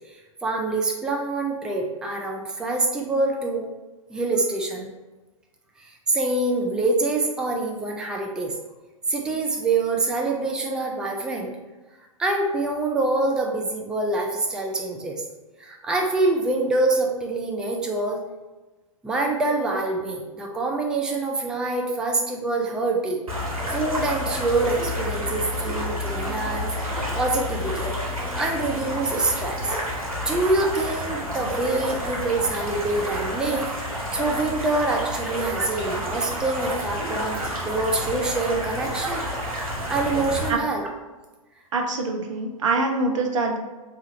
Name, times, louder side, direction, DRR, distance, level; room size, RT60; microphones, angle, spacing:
voice 1, 0.4-3.7 4.1-4.9 6.1-8.5 9.1-11.5 12.2-15.2 15.6-18.2 19.0-23.2 23.7-26.7 27.1-27.9 28.3-29.7 30.2-33.7 34.1-39.3 39.9-40.8, right 2 dB, 5° right, 1 dB, 0.3 m, -25 dB
sound 1, 23.3-40.5, equal, 80° right, 1.2 m, -30 dB
voice 2, 41.7-43.6, right 3 dB, 60° right, 2 dB, 0.7 m, -24 dB
3.6 x 2.9 x 3.0 m, 1.2 s
figure-of-eight pair, 105°, 18 cm